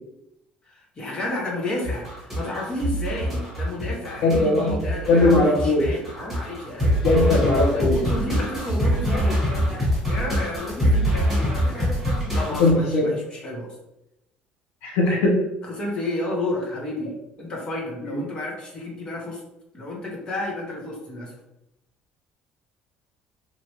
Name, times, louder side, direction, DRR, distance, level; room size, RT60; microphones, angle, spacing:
voice 1, 0.6-7.0 7.7-9.6 10.1-11.9 12.3-13.8 15.1-15.2 15.6-19.4 19.7-21.3, left 1 dB, 30° left, -1 dB, 0.9 m, -31 dB
sound 1, 1.8-12.7, equal, ahead, 1.3 m, -24 dB
voice 2, 4.2-4.8 5.1-5.9 7.0-8.0 12.6-13.1 14.8-15.4 18.0-18.1, left 2 dB, 90° left, -2 dB, 1.0 m, -19 dB
3.1 x 2.5 x 2.9 m, 0.88 s
cardioid pair, 140°, 3 cm